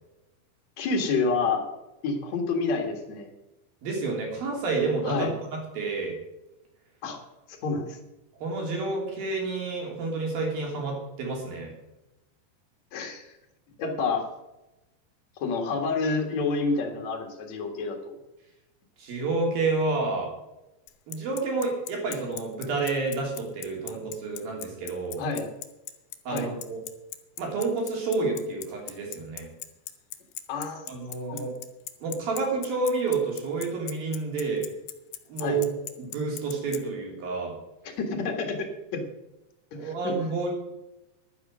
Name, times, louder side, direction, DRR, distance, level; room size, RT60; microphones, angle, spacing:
voice 1, 0.8-1.7 2.0-3.3 5.0-5.3 7.0-7.2 7.6-8.0 12.9-13.2 13.8-14.3 15.4-18.2 23.9-24.0 25.2-25.5 26.3-26.5 30.5-30.9 31.3-31.4 35.4-35.6 38.0-39.0 39.7-40.2, left 4 dB, 50° left, 3 dB, 2.6 m, -28 dB
voice 2, 3.8-6.2 8.4-11.7 19.0-20.3 21.1-25.2 26.3-26.8 27.4-29.5 30.9-31.5 32.0-34.7 35.3-35.7 36.0-37.5 39.8-40.5, right 3 dB, 60° right, 0 dB, 4.9 m, -29 dB
Bicycle, 20.9-36.8, left 14 dB, 85° left, 3.0 m, -38 dB
11.5 x 10.0 x 6.3 m, 0.98 s
omnidirectional pair, 4.7 m